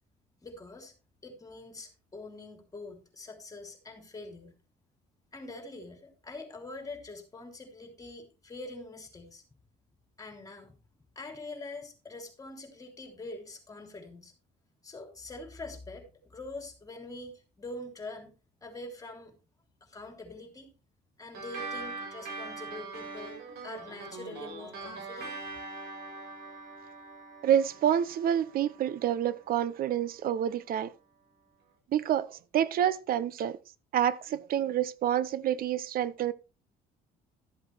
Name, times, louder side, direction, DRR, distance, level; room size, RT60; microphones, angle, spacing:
voice 1, 0.4-0.9 1.2-4.5 5.3-9.4 10.2-10.8 11.1-14.3 14.8-18.3 18.6-19.3 19.8-20.7 21.2-25.6, left 2 dB, 20° left, 3.4 m, -44 dB
sound 1, 21.3-30.2, right 3 dB, 85° right, 5.3 m, -43 dB
voice 2, 27.4-30.9 31.9-33.6 33.9-36.3, right 10 dB, 60° right, 0.7 m, -28 dB
13.0 x 7.9 x 3.4 m
cardioid pair, 110°, 17 cm